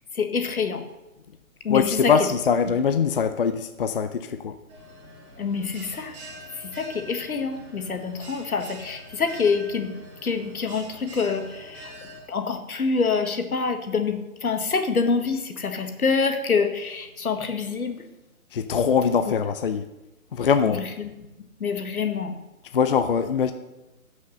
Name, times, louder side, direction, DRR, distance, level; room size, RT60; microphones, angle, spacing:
voice 1, 0.1-0.8 1.6-2.1 5.4-6.1 6.6-9.9 10.2-11.9 12.3-18.1 21.6-22.4, left 5 dB, 80° left, 7 dB, 1.7 m, -26 dB
voice 2, 1.7-4.6 18.5-19.9 20.3-20.9 22.7-23.5, left 6 dB, 40° left, 10 dB, 0.5 m, -22 dB
Bell, 4.7-12.2, equal, 20° right, 4.6 m, -44 dB
11.5 x 6.4 x 6.3 m, 0.99 s
hypercardioid pair, 150°, 43 cm